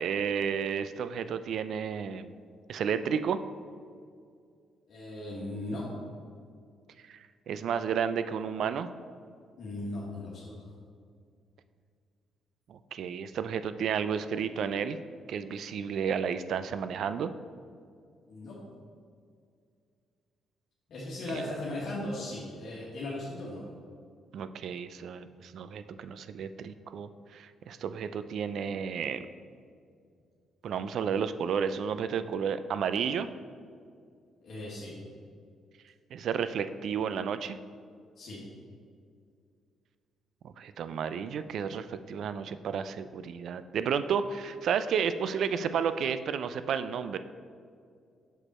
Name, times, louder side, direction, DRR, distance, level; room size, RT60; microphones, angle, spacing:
voice 1, 0.0-2.3 2.7-3.4 7.1-8.9 12.7-15.0 15.3-17.3 24.3-29.2 30.6-33.3 36.1-37.6 40.4-47.2, right 7 dB, 70° right, 12 dB, 0.3 m, -32 dB
voice 2, 4.9-5.8 9.6-10.7 18.3-18.6 20.9-23.6 34.4-34.9 38.2-38.4, left 1 dB, 65° left, -6 dB, 1.4 m, -37 dB
6.5 x 5.0 x 4.2 m, 2.3 s
cardioid pair, 90°, 0 cm